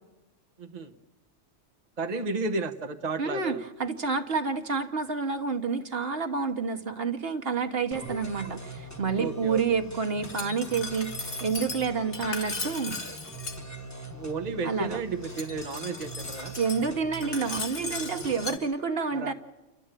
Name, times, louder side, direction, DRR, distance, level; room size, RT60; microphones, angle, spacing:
voice 1, 0.6-0.9 2.0-3.6 9.2-9.6 14.1-16.5 19.1-19.3, right 3 dB, 40° right, 4 dB, 1.1 m, -33 dB
voice 2, 3.2-13.0 14.6-15.0 16.5-19.3, right 5 dB, 55° right, 6 dB, 1.4 m, -29 dB
sound 1, 7.9-18.6, right 2 dB, 15° left, 1.5 m, -42 dB
Glass, 10.2-13.6 15.2-18.6, left 3 dB, 65° left, 2.6 m, -37 dB
29.5 x 12.5 x 9.0 m, 1.1 s
omnidirectional pair, 1.2 m